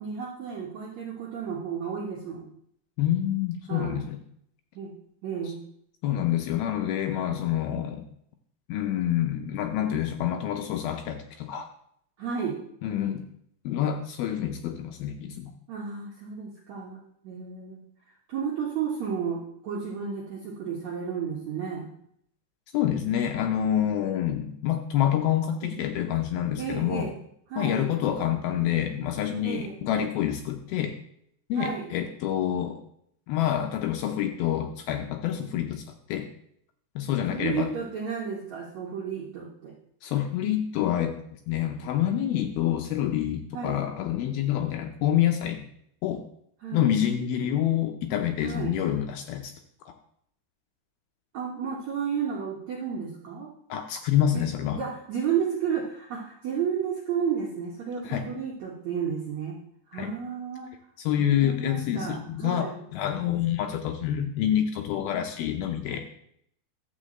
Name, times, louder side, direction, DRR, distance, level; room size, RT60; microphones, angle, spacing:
voice 1, 0.0-2.5 3.7-4.1 4.7-4.9 5.2-5.6 12.2-12.6 15.7-17.8 18.3-21.9 25.6-25.8 26.6-27.2 27.5-27.9 29.4-29.8 31.5-31.9 37.3-39.7 43.5-43.8 46.6-46.9 48.4-48.8 51.3-53.5 54.3-54.5 54.7-59.6 59.9-60.7 61.2-62.8, right 7 dB, 70° right, -3 dB, 1.7 m, -32 dB
voice 2, 3.0-4.2 5.5-5.6 6.0-8.1 8.7-11.7 12.8-13.2 13.6-15.5 22.7-27.1 27.6-31.0 31.5-32.8 33.3-36.3 37.0-37.7 40.0-41.1 41.5-45.6 46.0-46.2 46.7-49.5 49.9-50.0 53.7-54.8 58.0-58.2 59.9-60.1 61.0-66.0, left 10 dB, 80° left, 5 dB, 2.3 m, -27 dB
11.5 x 3.9 x 7.5 m, 0.70 s
omnidirectional pair, 4.9 m